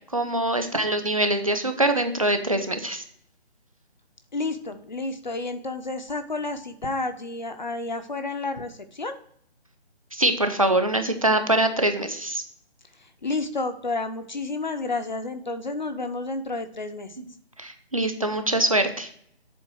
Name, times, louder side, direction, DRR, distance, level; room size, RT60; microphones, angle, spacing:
voice 1, 0.1-3.0 10.1-12.4 17.6-19.1, right 1 dB, 30° right, 7 dB, 0.6 m, -23 dB
voice 2, 4.3-9.2 12.9-17.2, left 3 dB, 40° left, 8 dB, 0.7 m, -31 dB
7.8 x 4.0 x 6.2 m, 0.65 s
figure-of-eight pair, 170°, 33 cm